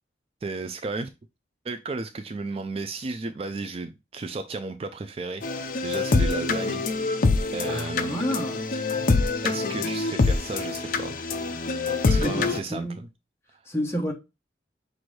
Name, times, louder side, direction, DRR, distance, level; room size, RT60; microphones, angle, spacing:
voice 1, 0.4-1.1 1.6-7.2 7.5-8.2 9.4-11.2 12.1-13.1 13.5-13.6, right 3 dB, 35° right, 0.3 m, -34 dB
sound 1, 5.4-12.6, left 3 dB, 50° left, 0.5 m, -25 dB
voice 2, 7.7-8.6 12.2-13.0 13.7-14.1, equal, 15° left, 0.9 m, -30 dB
6.0 x 2.6 x 3.1 m
head